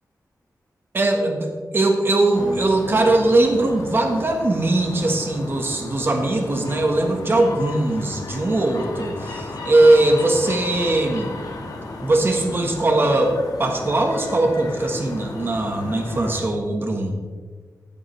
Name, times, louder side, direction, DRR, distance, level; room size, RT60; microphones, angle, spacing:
voice 1, 0.9-11.3 12.0-17.2, right 2 dB, 35° right, 2 dB, 1.4 m, -20 dB
sound 1, 2.3-16.4, left 2 dB, 80° left, 1.6 m, -34 dB
15.0 x 8.5 x 3.3 m, 1.5 s
wide cardioid pair, 135°, 6 cm